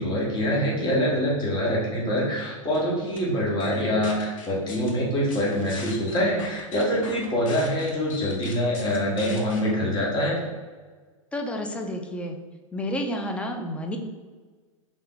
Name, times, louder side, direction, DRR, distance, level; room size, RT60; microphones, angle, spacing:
voice 1, 0.0-10.3, equal, 25° left, -4 dB, 1.3 m, -25 dB
sound 1, 2.7-3.2 3.6-4.9 5.3-9.6, left 4 dB, 65° left, 1.0 m, -41 dB
voice 2, 3.6-4.0 11.3-12.4 12.7-14.0, left 1 dB, 5° left, 4 dB, 0.4 m, -31 dB
3.6 x 3.3 x 3.8 m, 1.4 s
hypercardioid pair, 115°, 18 cm